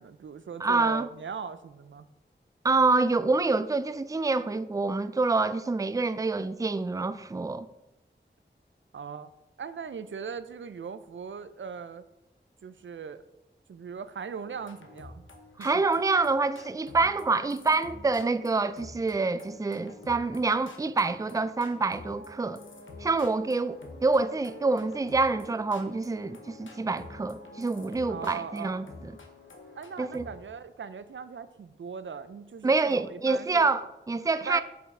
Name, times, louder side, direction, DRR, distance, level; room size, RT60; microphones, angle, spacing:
voice 1, 0.0-2.1 8.9-9.3 9.6-12.0 12.6-13.2 13.7-15.2 15.6-15.7 28.1-28.8 29.7-33.8 34.4-34.6, right 6 dB, 85° right, 0.4 m, -39 dB
voice 2, 0.6-1.1 2.6-7.7 15.6-22.6 23.0-29.1 30.0-30.3 32.6-34.6, right 3 dB, 15° right, 0.3 m, -27 dB
sound 1, 14.4-30.4, left 2 dB, 90° left, 1.0 m, -49 dB
7.8 x 5.3 x 3.6 m
wide cardioid pair, 50°, 19 cm